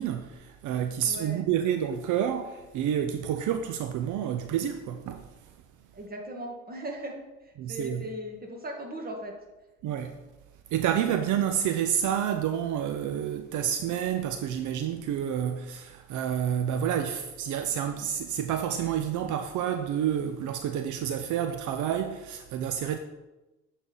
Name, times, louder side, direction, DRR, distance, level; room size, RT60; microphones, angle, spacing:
voice 1, 0.0-5.2 7.6-8.0 9.8-10.1 10.7-23.0, right 9 dB, 80° right, 0.5 m, -29 dB
voice 2, 1.0-1.4 5.9-9.3, equal, 30° right, 1.5 m, -38 dB
7.3 x 4.0 x 3.9 m
cardioid pair, 90°, 30 cm